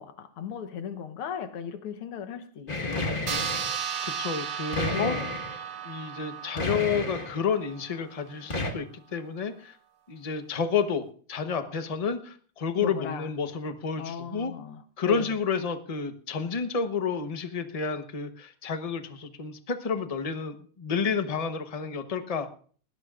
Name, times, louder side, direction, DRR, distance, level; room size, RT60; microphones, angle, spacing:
voice 1, 0.0-3.7 4.9-5.3 12.8-13.3 14.0-15.3, left 7 dB, 80° left, 2.0 m, -37 dB
sound 1, 2.7-3.8 4.7-5.6 6.6-7.4 8.5-8.7, left 2 dB, 25° left, 1.4 m, -31 dB
sound 2, 3.3-8.1, right 8 dB, 75° right, 2.2 m, -35 dB
voice 2, 4.0-5.2 5.8-9.8 10.1-14.5 15.0-22.5, left 5 dB, 50° left, 0.4 m, -30 dB
20.5 x 17.0 x 2.4 m
omnidirectional pair, 2.4 m